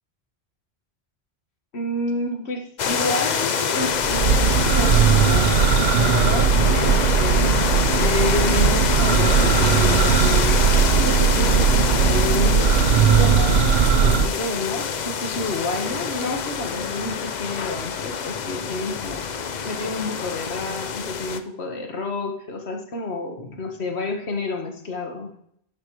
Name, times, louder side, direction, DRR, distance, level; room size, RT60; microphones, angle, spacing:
voice 1, 1.7-5.5 6.0-13.6 14.0-19.2 19.7-25.3, left 2 dB, 80° left, 3 dB, 1.7 m, -29 dB
sound 1, 2.8-21.4, left 6 dB, 50° left, 0.7 m, -25 dB
Church bell, 4.0-14.3, right 7 dB, 65° right, 0.8 m, -18 dB
11.0 x 5.1 x 4.7 m, 0.70 s
omnidirectional pair, 1.1 m